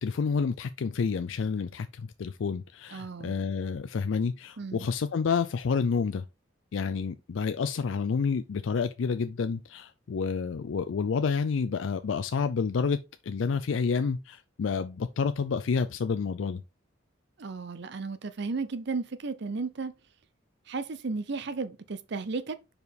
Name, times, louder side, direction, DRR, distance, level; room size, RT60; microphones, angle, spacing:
voice 1, 0.0-6.2 6.7-13.0 13.3-16.6, left 5 dB, 85° left, 0.4 m, -29 dB
voice 2, 2.9-3.4 4.6-4.9 17.4-19.9 20.7-22.6, right 4 dB, 65° right, 0.6 m, -34 dB
5.1 x 4.7 x 4.0 m
head